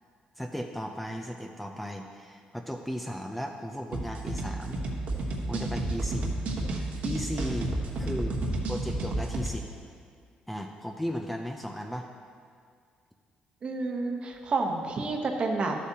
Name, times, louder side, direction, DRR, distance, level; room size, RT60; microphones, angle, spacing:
voice 1, 0.4-4.8 5.5-6.4 7.0-8.4 8.7-9.7 10.5-12.1, equal, 5° left, 2 dB, 0.4 m, -36 dB
sound 1, 3.9-9.5, right 2 dB, 65° right, 1.2 m, -31 dB
voice 2, 13.6-15.8, right 3 dB, 40° right, 3 dB, 1.0 m, -29 dB
12.5 x 8.2 x 2.8 m, 2.1 s
cardioid pair, 125°, 3 cm